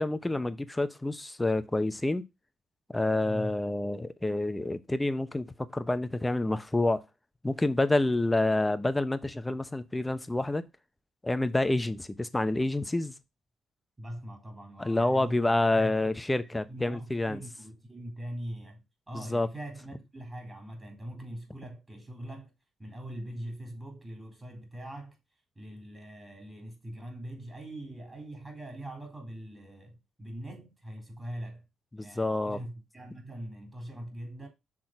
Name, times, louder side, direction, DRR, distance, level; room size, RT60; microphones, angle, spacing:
voice 1, 0.0-2.2 2.9-7.0 7.4-10.6 11.2-13.1 14.8-17.4 19.1-19.5 31.9-32.6, left 2 dB, 15° left, 0.9 m, -28 dB
voice 2, 3.2-3.6 14.0-16.2 16.7-22.5 22.8-25.2 25.6-31.6 32.0-34.5, right 1 dB, 20° right, 3.6 m, -42 dB
6.3 x 3.8 x 5.8 m
supercardioid pair, 60°, 0 cm